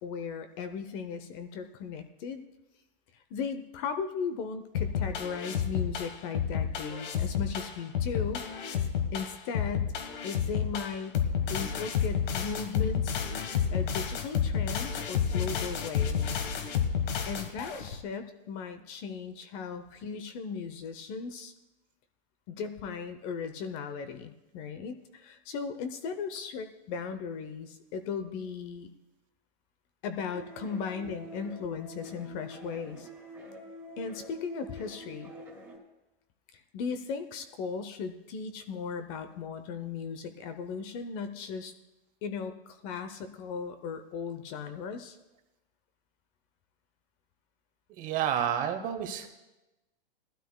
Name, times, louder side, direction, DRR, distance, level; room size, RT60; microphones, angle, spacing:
voice 1, 0.0-2.4 3.1-8.4 9.1-9.9 10.2-11.2 11.5-13.2 13.7-16.4 17.3-21.5 22.5-28.9 30.0-33.1 34.0-35.3 36.5-41.7 42.2-45.2, left 5 dB, 35° left, 9 dB, 0.7 m, -37 dB
sound 1, 4.7-17.9, left 7 dB, 60° left, 1.4 m, -30 dB
sound 2, 30.3-35.8, left 1 dB, 5° right, 2.2 m, -46 dB
voice 2, 47.9-49.3, right 9 dB, 25° right, 7 dB, 1.0 m, -30 dB
18.5 x 12.5 x 2.2 m, 1.0 s
hypercardioid pair, 140°, 29 cm